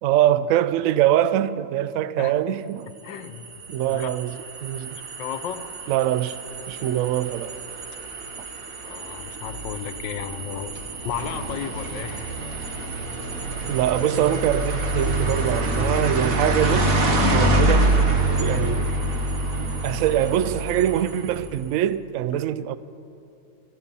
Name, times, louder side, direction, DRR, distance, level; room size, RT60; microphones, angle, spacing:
voice 1, 0.0-2.9 3.7-5.0 5.9-6.4 6.7-7.5 13.7-17.0 17.3-18.0 18.4-18.9 19.6-22.8, right 11 dB, 85° right, 0.7 m, -23 dB
voice 2, 3.0-3.6 3.9-4.1 4.9-5.7 8.8-10.7 11.0-12.4 22.3-22.4, left 9 dB, 80° left, 1.5 m, -34 dB
sound 1, 3.1-21.6, right 1 dB, 50° right, 1.6 m, -26 dB
sound 2, 10.5-20.8, right 2 dB, 65° right, 4.4 m, -43 dB
26.5 x 9.0 x 5.4 m
omnidirectional pair, 2.0 m